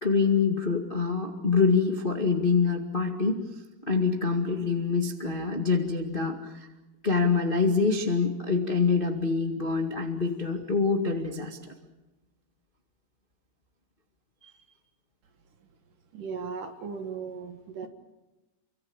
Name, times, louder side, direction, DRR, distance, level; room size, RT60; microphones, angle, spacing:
voice 1, 0.0-3.3 3.9-6.7 7.0-11.6, left 5 dB, 30° left, 2 dB, 0.9 m, -25 dB
voice 2, 16.1-17.9, right 5 dB, 55° right, 7 dB, 2.9 m, -37 dB
29.0 x 25.0 x 7.2 m, 1.0 s
omnidirectional pair, 5.0 m